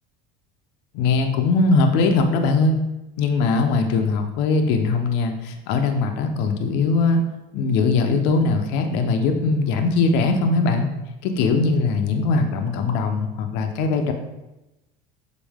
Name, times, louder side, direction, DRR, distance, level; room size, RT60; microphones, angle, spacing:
voice 1, 0.9-2.8 3.2-7.2 7.5-10.9 11.2-14.1, left 3 dB, 55° left, 5 dB, 0.7 m, -20 dB
7.3 x 4.0 x 3.5 m, 0.97 s
cardioid pair, 165°, 21 cm